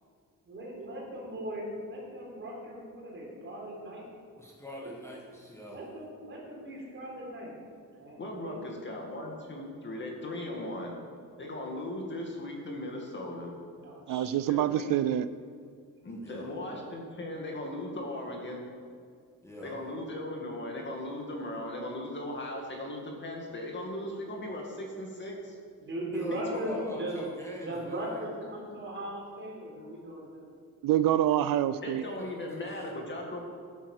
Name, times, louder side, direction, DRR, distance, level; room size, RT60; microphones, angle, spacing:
voice 1, 0.5-4.0 4.8-4.9 5.7-7.6 7.9-8.6 13.8-14.4 25.8-26.7 27.0-27.2 27.6-30.4, right 1 dB, 35° right, -3 dB, 4.0 m, -39 dB
voice 2, 4.4-5.8 16.1-16.5 19.4-19.8 26.1-28.3 32.0-33.1, equal, 10° left, -3 dB, 1.5 m, -42 dB
voice 3, 8.2-11.0 11.4-13.6 14.5-15.0 16.0-18.7 19.6-25.6 26.3-27.0 31.8-33.4, left 1 dB, 35° left, 0 dB, 2.2 m, -38 dB
voice 4, 14.1-15.2 30.8-32.0, right 12 dB, 80° right, 14 dB, 0.5 m, -26 dB
12.0 x 8.8 x 6.6 m, 2.1 s
cardioid pair, 150°, 33 cm